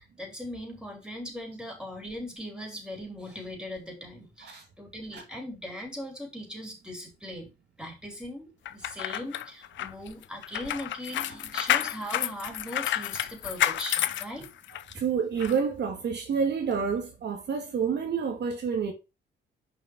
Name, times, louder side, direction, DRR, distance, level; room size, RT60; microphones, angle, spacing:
voice 1, 0.0-7.5 7.8-14.5 14.9-15.0, equal, 5° right, 4.3 m, -39 dB
sound 1, 8.7-14.9 15.4-15.5, left 12 dB, 70° left, 0.7 m, -30 dB
voice 2, 14.9-18.9, right 6 dB, 60° right, 1.9 m, -28 dB
6.1 x 5.4 x 4.8 m
cardioid pair, 90°, 20 cm